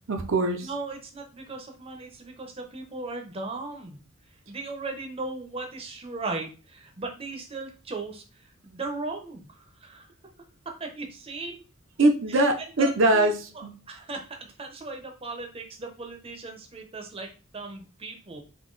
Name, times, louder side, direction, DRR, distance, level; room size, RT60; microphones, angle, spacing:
voice 1, 0.1-0.7 12.0-13.8, right 2 dB, 65° right, 4 dB, 0.6 m, -22 dB
voice 2, 0.6-4.0 4.5-10.1 10.6-11.6 12.3-12.4 12.8-18.4, right 3 dB, 25° right, 3 dB, 0.7 m, -37 dB
3.7 x 2.8 x 3.8 m, 0.34 s
head